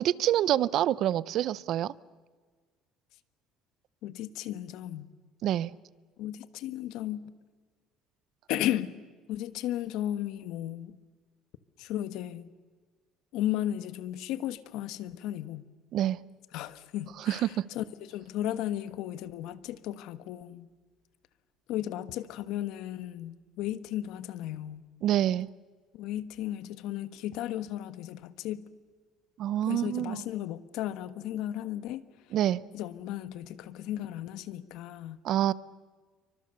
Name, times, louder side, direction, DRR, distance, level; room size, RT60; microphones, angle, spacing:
voice 1, 0.0-1.9 5.4-5.7 15.9-16.2 17.3-17.6 25.0-25.5 29.4-30.2 32.3-32.6 35.2-35.5, right 12 dB, 55° right, 0.7 m, -26 dB
voice 2, 4.0-5.1 6.2-7.2 8.5-8.9 9.3-11.0 11.8-12.5 13.3-15.6 16.5-20.7 21.7-24.9 25.9-28.7 29.6-32.1 32.7-35.2, left 12 dB, 70° left, 1.3 m, -35 dB
28.0 x 24.5 x 6.7 m
cardioid pair, 150°, 0 cm